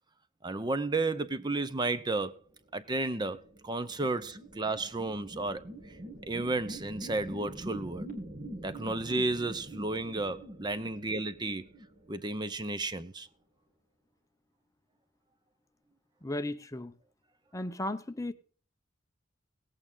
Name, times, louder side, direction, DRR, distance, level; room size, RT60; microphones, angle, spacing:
voice 1, 0.4-2.3 2.7-5.6 6.2-8.1 8.6-11.7 12.1-13.3, right 2 dB, 25° right, 0.6 m, -32 dB
sound 1, 2.9-12.6, right 1 dB, 45° right, 3.3 m, -45 dB
voice 2, 16.2-16.9 17.5-18.3, left 1 dB, 15° left, 0.7 m, -35 dB
17.5 x 8.6 x 3.8 m
head